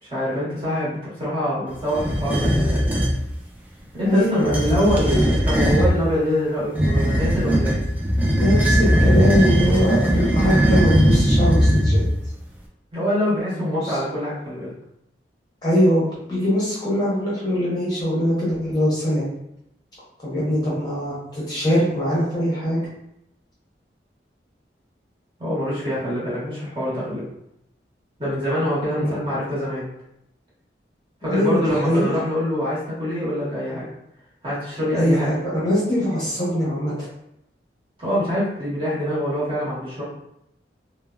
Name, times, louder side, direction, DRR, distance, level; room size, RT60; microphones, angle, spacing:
voice 1, 0.0-2.8 3.9-7.8 12.9-14.7 25.4-27.2 28.2-29.8 31.2-33.8 34.4-35.3 35.9-36.0 38.0-40.0, equal, 30° right, -8 dB, 1.1 m, -25 dB
sound 1, 1.9-3.2 4.3-6.0 6.7-12.3, equal, 10° right, 0.3 m, -19 dB
voice 2, 4.0-5.3 8.4-12.0 13.8-14.0 15.6-19.2 20.2-22.8 29.0-29.2 31.3-32.1 35.0-35.4 35.6-36.9, equal, 20° left, -8 dB, 0.7 m, -22 dB
3.3 x 2.0 x 2.3 m, 0.80 s
head